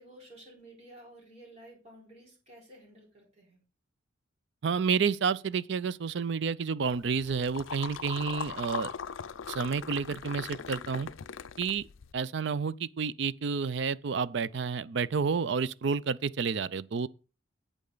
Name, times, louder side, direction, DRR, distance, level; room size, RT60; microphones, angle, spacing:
voice 1, 0.0-3.6, right 1 dB, 35° right, 4.1 m, -53 dB
voice 2, 4.6-8.9 9.5-11.1 11.6-11.9 12.1-17.1, right 5 dB, 60° right, 0.4 m, -30 dB
sound 1, 6.8-12.1, left 7 dB, 75° left, 0.5 m, -40 dB
8.6 x 8.4 x 3.9 m
head